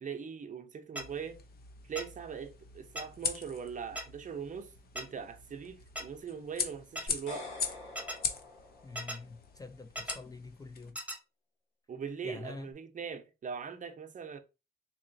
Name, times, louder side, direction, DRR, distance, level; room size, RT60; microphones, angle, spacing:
voice 1, 0.0-1.4 1.8-7.5 11.9-14.4, right 6 dB, 40° right, 0.7 m, -41 dB
sound 1, 1.0-10.9, left 6 dB, 50° left, 0.7 m, -41 dB
sound 2, 1.0-1.1 2.0-2.1 3.0-3.1 4.0-4.1 5.0-5.1 6.0-6.1 7.0-7.1 8.0-8.2 9.0-9.2 10.0-10.2 11.0-11.2, right 1 dB, 5° right, 0.8 m, -37 dB
sound 3, 7.1-9.4, left 3 dB, 85° left, 1.4 m, -46 dB
voice 2, 8.8-11.0 12.2-12.7, left 3 dB, 20° left, 0.4 m, -45 dB
3.9 x 2.9 x 2.7 m
cardioid pair, 90°, 20 cm